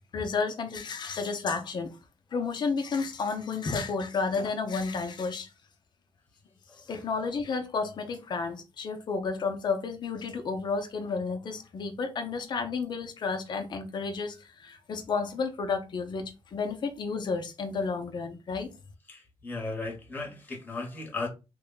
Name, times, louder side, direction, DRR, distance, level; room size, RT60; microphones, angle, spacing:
voice 1, 0.1-2.0 2.3-5.5 6.9-18.7, left 4 dB, 45° left, 0.7 m, -31 dB
voice 2, 6.7-7.0 19.1-21.3, left 3 dB, 15° left, 1.0 m, -36 dB
3.2 x 2.2 x 3.8 m
cardioid pair, 140°, 11 cm